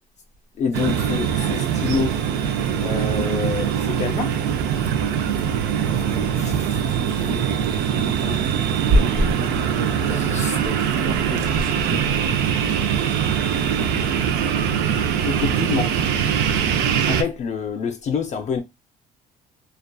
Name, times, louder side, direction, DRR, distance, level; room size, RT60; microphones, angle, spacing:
voice 1, 0.6-2.2 2.8-4.4 6.4-6.5 10.3-10.5 15.2-15.9 16.2-16.3 17.1-18.6, left 5 dB, 45° left, 0.4 m, -26 dB
sound 1, 0.7-17.2, right 8 dB, 85° right, 0.4 m, -22 dB
voice 2, 5.8-8.4 8.9-10.3 10.6-13.1, right 1 dB, 55° right, 0.9 m, -28 dB
2.5 x 2.3 x 2.2 m
cardioid pair, 110°, 17 cm